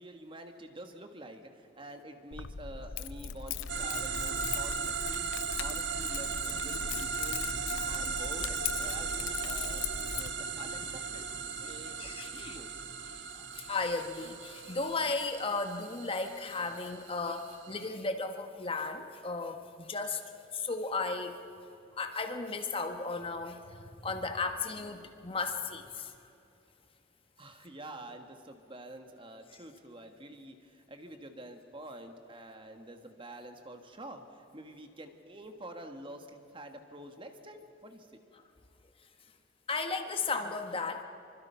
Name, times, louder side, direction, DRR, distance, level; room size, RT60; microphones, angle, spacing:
voice 1, 0.0-11.2 11.6-12.0 12.3-12.9 27.4-38.2, right 1 dB, 30° right, 6 dB, 1.7 m, -48 dB
Keys jangling, 2.3-10.3, left 7 dB, 90° left, 0.7 m, -39 dB
sound 1, 3.7-17.9, right 5 dB, 70° right, 1.4 m, -37 dB
voice 2, 12.0-12.6 13.3-20.2 20.5-21.4 22.0-26.1 39.7-41.0, left 3 dB, 30° left, 6 dB, 1.2 m, -35 dB
25.5 x 25.0 x 5.8 m, 2.8 s
head